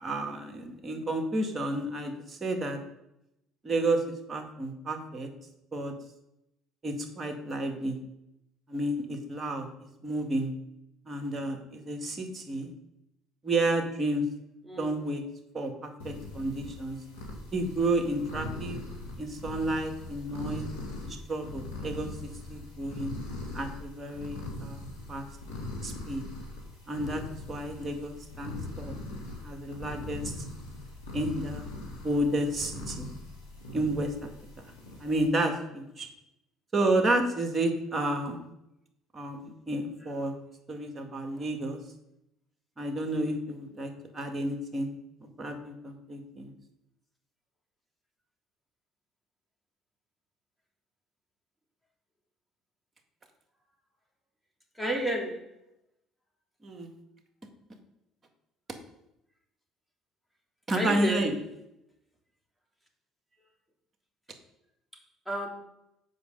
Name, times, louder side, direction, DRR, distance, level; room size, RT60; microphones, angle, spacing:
voice 1, 0.0-2.8 3.6-4.0 4.3-5.3 5.7-5.9 6.8-8.0 8.7-10.5 11.1-12.7 13.4-14.2 14.8-15.2 15.5-17.0 17.5-18.8 19.2-20.7 21.0-22.1 22.5-23.1 23.5-24.8 25.1-25.3 25.8-26.2 26.9-27.2 27.5-29.0 29.4-30.3 31.1-33.1 33.7-34.3 34.6-34.7 35.0-36.1 36.7-38.4 39.1-40.3 40.7-41.8 42.8-44.9 45.2-46.5 56.6-56.9 60.7-61.4, right 1 dB, 30° right, 4 dB, 2.0 m, -31 dB
sound 1, 16.0-35.3, left 2 dB, 90° left, 2.4 m, -41 dB
voice 2, 54.8-55.4 60.7-61.2 65.3-65.5, equal, ahead, -1 dB, 2.7 m, -30 dB
8.0 x 5.1 x 6.5 m, 0.84 s
hypercardioid pair, 60°, 0 cm